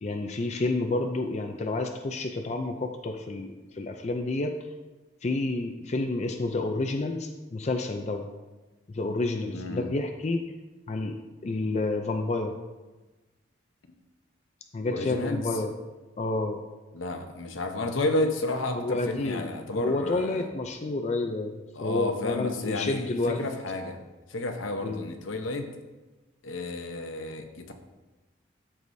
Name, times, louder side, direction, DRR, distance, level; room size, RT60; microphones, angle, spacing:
voice 1, 0.0-4.6 5.2-8.3 8.9-10.4 10.9-12.6 14.7-15.7 16.2-16.6 18.7-23.5 24.8-25.0, left 2 dB, 35° left, 5 dB, 0.4 m, -30 dB
voice 2, 9.5-9.9 14.9-15.6 16.9-20.5 21.7-24.0 24.3-25.7 26.4-27.7, left 2 dB, 80° left, 5 dB, 0.8 m, -31 dB
13.5 x 4.8 x 2.7 m, 1.2 s
head